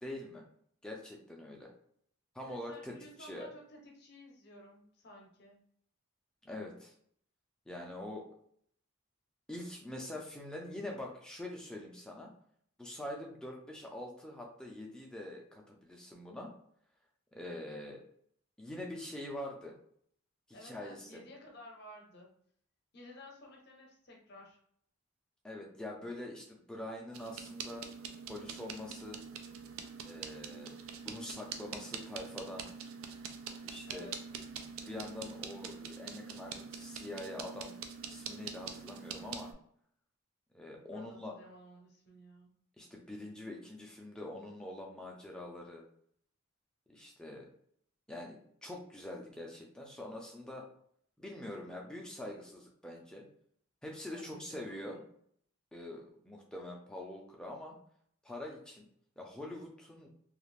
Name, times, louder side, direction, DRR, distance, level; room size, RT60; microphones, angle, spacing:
voice 1, 0.0-0.4 0.8-1.7 2.3-2.9 3.2-3.5 6.4-6.9 7.7-8.3 9.5-12.3 12.8-16.5 17.3-18.0 18.6-19.7 20.5-21.2 25.4-27.8 28.3-29.2 30.0-30.8 31.0-32.7 33.6-34.1 34.8-37.7 38.1-39.5 40.5-41.3 42.8-45.8 46.9-47.5 48.1-50.6 51.2-53.2 53.8-55.0 55.7-57.7 58.2-58.9 59.2-60.1, left 1 dB, 5° left, -1 dB, 0.4 m, -44 dB
voice 2, 2.5-5.6 20.5-22.4 22.9-24.6 33.8-34.2 40.9-42.5 54.1-55.1, left 1 dB, 50° left, 0 dB, 0.7 m, -54 dB
sound 1, 27.1-39.5, right 6 dB, 75° right, 0.4 m, -45 dB
2.4 x 2.4 x 3.2 m, 0.65 s
head